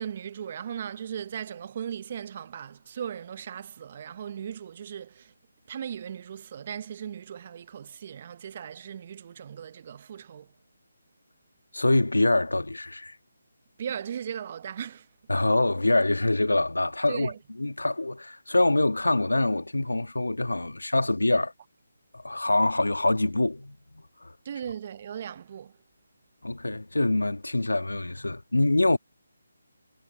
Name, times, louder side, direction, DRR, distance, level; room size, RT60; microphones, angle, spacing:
voice 1, 0.0-5.3 5.7-10.5 13.8-15.1 17.1-17.4 24.4-25.8, right 8 dB, 40° right, 0.9 m, -37 dB
voice 2, 11.7-13.2 15.3-17.3 17.6-21.5 22.1-24.3 26.4-29.0, left 2 dB, 90° left, 1.5 m, -25 dB
figure-of-eight pair, 155°, 0 cm